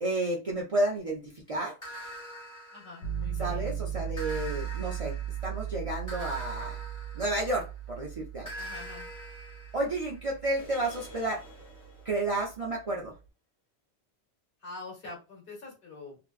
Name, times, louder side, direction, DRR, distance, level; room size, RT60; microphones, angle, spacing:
voice 1, 0.0-1.8 3.4-5.2 5.4-6.8 7.1-8.5 9.7-11.4 12.0-13.1, right 2 dB, 45° right, -2 dB, 0.5 m, -31 dB
sound 1, 1.8-3.5 4.2-7.8 8.5-12.2, equal, 15° left, 1.0 m, -45 dB
voice 2, 2.7-3.7 8.5-9.0 14.6-16.2, left 3 dB, 55° left, -1 dB, 1.3 m, -45 dB
sound 2, 3.0-12.9, right 10 dB, 80° left, 1.1 m, -38 dB
2.6 x 2.3 x 2.4 m, 0.29 s
omnidirectional pair, 1.1 m